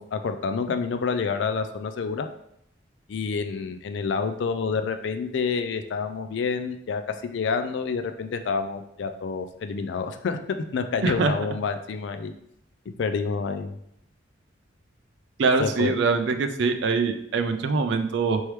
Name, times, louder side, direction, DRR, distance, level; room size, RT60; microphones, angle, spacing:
voice 1, 0.0-2.3 3.1-12.3 13.0-13.8 15.6-15.9, left 5 dB, 65° left, 8 dB, 0.3 m, -28 dB
voice 2, 11.0-11.3 15.4-18.4, right 4 dB, 65° right, 7 dB, 0.4 m, -23 dB
4.5 x 3.3 x 3.0 m, 0.75 s
head